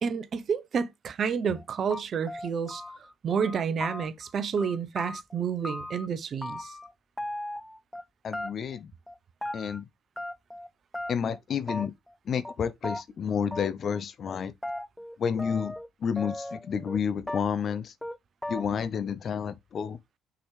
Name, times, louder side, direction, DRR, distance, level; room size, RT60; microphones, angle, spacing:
voice 1, 0.0-6.7, right 6 dB, 50° right, 0.8 m, -30 dB
sound 1, 1.5-1.6 1.9-3.1 3.4-4.3 4.6-6.1 6.4-6.9 7.2-8.0 8.3-8.8 9.1-9.8 10.2-10.7 10.9-11.4 11.7-12.1 12.4-12.5 12.8-13.0 13.5-14.0 14.3-15.9 16.2-17.0 17.3-17.7 18.0-18.2 18.4-18.9, left 1 dB, 10° left, 0.5 m, -37 dB
voice 2, 8.2-8.9 9.5-9.8 11.1-11.9 12.3-14.5 15.2-15.7 16.0-17.9 18.5-20.0, left 7 dB, 50° left, 0.6 m, -30 dB
6.1 x 4.9 x 3.3 m
hypercardioid pair, 55°, 0 cm